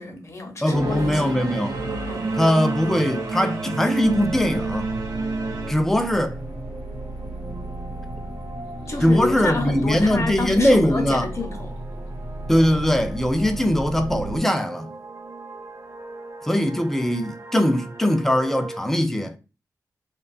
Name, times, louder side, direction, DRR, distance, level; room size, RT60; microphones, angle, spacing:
voice 1, 0.0-1.5 2.1-2.3 8.9-11.8, left 3 dB, 45° left, 0.7 m, -29 dB
voice 2, 0.6-1.7 2.4-4.9 5.7-6.4 9.0-11.3 12.5-14.9 16.4-19.4, equal, 5° left, 0.4 m, -21 dB
Singing / Musical instrument, 0.7-5.7, right 3 dB, 85° right, 0.8 m, -28 dB
sound 1, 0.8-18.8, right 3 dB, 45° right, 0.5 m, -40 dB
sound 2, 4.0-14.4, right 1 dB, 90° left, 0.8 m, -34 dB
2.5 x 2.3 x 2.4 m
cardioid pair, 70°, 7 cm